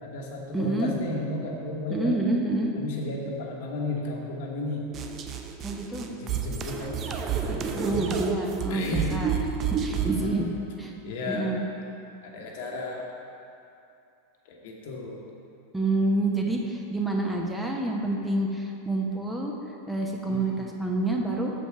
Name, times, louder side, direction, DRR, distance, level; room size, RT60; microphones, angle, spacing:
voice 1, 0.0-2.2 2.8-4.9 6.1-8.1 8.7-9.2 10.0-10.5 11.0-11.6 12.2-13.1 14.4-15.2 20.2-20.6, left 2 dB, 60° left, -1 dB, 1.1 m, -34 dB
voice 2, 0.5-0.9 1.9-2.7 5.6-6.1 7.8-9.3 9.7-10.5 10.8-10.9 11.3-11.6 15.7-19.5 19.9-21.5, right 2 dB, 5° right, 0 dB, 0.8 m, -28 dB
sound 1, 4.9-10.3, right 7 dB, 35° right, 0.5 m, -30 dB
6.6 x 5.1 x 4.8 m, 2.7 s
hypercardioid pair, 95°, 0 cm